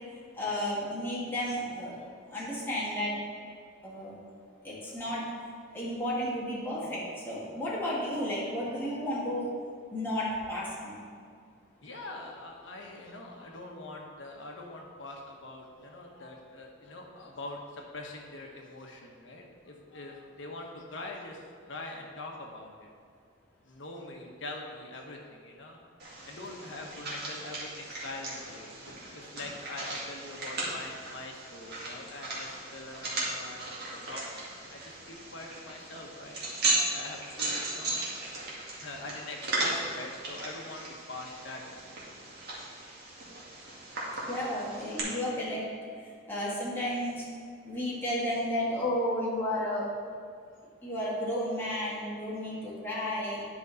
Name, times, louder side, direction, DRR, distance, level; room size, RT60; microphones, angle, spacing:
voice 1, 0.3-2.0 2.3-3.2 3.8-4.2 4.6-5.3 5.7-9.5 9.9-11.1 44.3-45.7 46.0-47.3 47.7-49.9 50.8-53.5, left 1 dB, 10° left, -7 dB, 1.9 m, -32 dB
voice 2, 11.8-22.9 23.6-25.8 26.3-36.4 36.9-38.0 38.8-41.9 42.1-42.3, left 2 dB, 65° left, 0 dB, 1.2 m, -43 dB
sound 1, 26.0-45.0, right 2 dB, 55° right, 2.0 m, -36 dB
10.5 x 5.4 x 4.0 m, 2.2 s
head